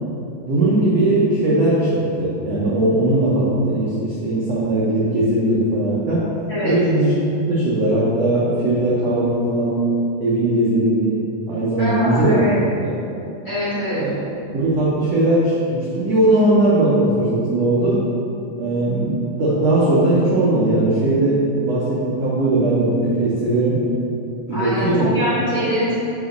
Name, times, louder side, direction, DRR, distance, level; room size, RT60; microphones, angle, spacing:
voice 1, 0.5-6.3 6.6-7.1 7.5-9.8 10.2-12.5 12.8-12.9 13.9-14.1 14.5-18.0 18.6-23.8 24.5-25.1, right 1 dB, 75° right, -7 dB, 1.5 m, -19 dB
voice 2, 11.8-12.6 13.4-14.0 24.5-25.9, equal, 40° left, -12 dB, 1.4 m, -23 dB
5.4 x 5.1 x 5.1 m, 2.8 s
omnidirectional pair, 4.2 m